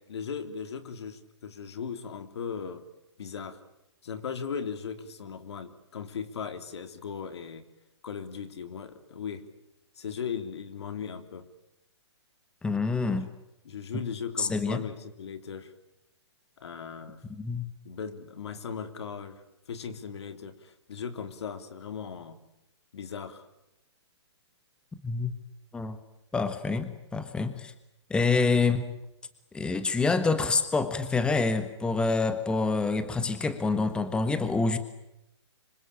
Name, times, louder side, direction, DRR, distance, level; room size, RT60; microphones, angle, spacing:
voice 1, 0.0-2.8 3.2-3.6 4.0-7.6 8.0-9.4 9.9-11.4 13.1-13.3 13.6-15.7 16.6-17.2 17.8-22.4 22.9-23.5, left 6 dB, 65° left, 9 dB, 3.4 m, -38 dB
voice 2, 12.6-13.3 13.9-14.0 14.4-14.8 17.4-17.7 25.0-25.3 25.7-26.0 26.3-27.7 28.1-28.9 29.5-34.8, left 4 dB, 5° left, 10 dB, 1.4 m, -27 dB
26.0 x 24.0 x 8.8 m, 0.87 s
hypercardioid pair, 150°, 15 cm